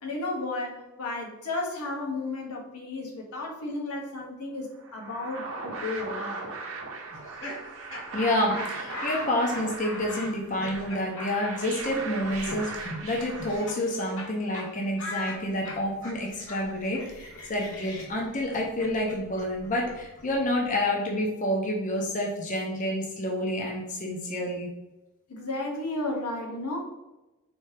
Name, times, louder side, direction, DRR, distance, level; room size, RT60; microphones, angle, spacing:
voice 1, 0.0-6.5 25.3-26.8, left 2 dB, 80° left, 0 dB, 1.0 m, -33 dB
sound 1, 4.8-14.2, right 3 dB, 65° right, 0.7 m, -38 dB
Laughter, 7.1-14.3 14.5-14.7 15.0-20.7, left 1 dB, 60° left, 1.2 m, -40 dB
voice 2, 8.1-24.7, left 1 dB, 35° left, -1 dB, 0.6 m, -29 dB
4.3 x 2.7 x 3.2 m, 1.0 s
head